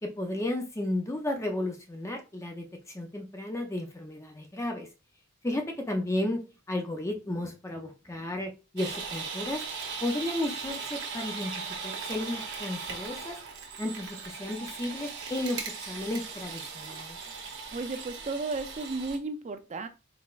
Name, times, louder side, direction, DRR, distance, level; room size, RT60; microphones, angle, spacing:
voice 1, 0.0-2.6 2.9-4.9 5.4-6.4 6.7-9.6 10.0-11.5 11.8-13.4 13.8-17.2, left 1 dB, 15° left, 3 dB, 0.5 m, -33 dB
sound 1, 8.8-19.2, right 5 dB, 60° right, 1.0 m, -38 dB
voice 2, 17.7-19.9, right 3 dB, 35° right, 8 dB, 0.5 m, -34 dB
4.3 x 3.9 x 2.4 m, 0.30 s
head